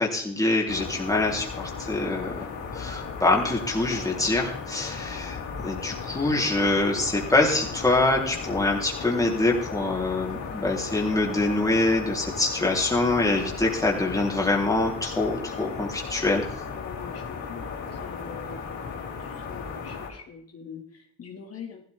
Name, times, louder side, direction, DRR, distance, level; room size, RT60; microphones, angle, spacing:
voice 1, 0.0-2.3 2.7-16.5, left 2 dB, 10° left, -1 dB, 3.6 m, -25 dB
sound 1, 0.7-20.1, left 5 dB, 75° left, 3.8 m, -36 dB
voice 2, 16.7-17.7 18.0-18.8 19.2-21.8, left 6 dB, 55° left, 1 dB, 2.3 m, -43 dB
15.0 x 13.5 x 3.6 m, 0.64 s
cardioid pair, 90°, 30 cm